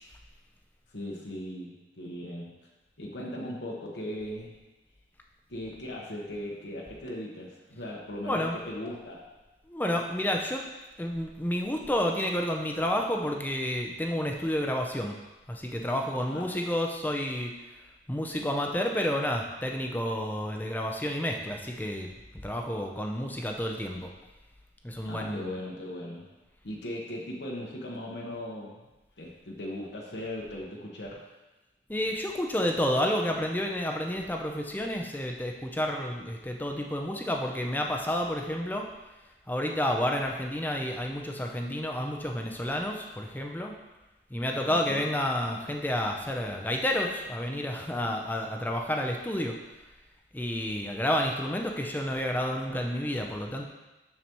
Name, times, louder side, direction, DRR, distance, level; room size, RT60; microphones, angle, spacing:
voice 1, 0.9-2.5 3.0-4.6 5.5-9.3 16.3-16.4 25.0-26.3 26.6-28.8 29.2-31.2 44.7-45.0, left 1 dB, 85° left, -2 dB, 1.2 m, -38 dB
voice 2, 8.2-8.6 9.7-10.6 11.0-15.2 15.5-17.5 18.1-22.1 22.4-24.1 24.8-25.4 31.9-38.8 39.5-43.7 44.3-49.5 50.3-53.7, equal, 10° left, 2 dB, 0.5 m, -30 dB
7.1 x 6.7 x 3.0 m, 1.1 s
head